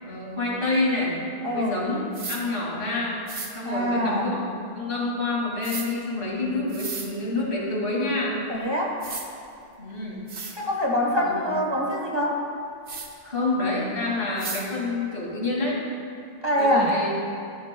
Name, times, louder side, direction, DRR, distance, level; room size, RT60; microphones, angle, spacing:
voice 1, 0.0-1.2 1.5-3.2 3.5-4.4 4.7-8.4 9.8-10.2 11.1-11.5 13.2-15.8 16.6-17.1, left 2 dB, 60° left, -4 dB, 2.6 m, -27 dB
voice 2, 1.4-1.8 3.6-4.4 8.5-9.0 10.6-12.4 16.4-17.0, equal, 25° right, -2 dB, 1.3 m, -24 dB
sound 1, 2.1-2.4 3.3-3.5 5.6-5.9 6.7-7.1 8.5-8.6 9.0-9.2 9.9-10.0 10.3-10.5 12.9-13.1 14.4-14.6, right 4 dB, 80° right, 1.4 m, -34 dB
14.5 x 12.5 x 2.2 m, 2.5 s
omnidirectional pair, 1.0 m